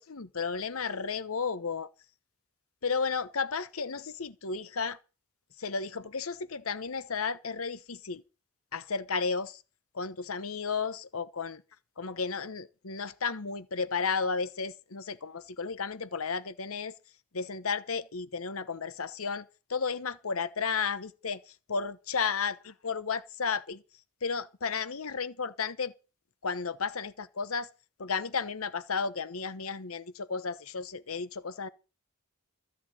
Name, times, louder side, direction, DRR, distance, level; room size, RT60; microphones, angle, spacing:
voice 1, 0.0-1.9 2.8-5.0 5.6-8.2 8.7-9.6 9.9-11.6 12.0-16.9 17.3-21.4 21.7-23.8 24.2-25.9 26.4-27.7 28.0-31.7, left 5 dB, 85° left, 1.0 m, -33 dB
13.5 x 6.9 x 9.2 m
head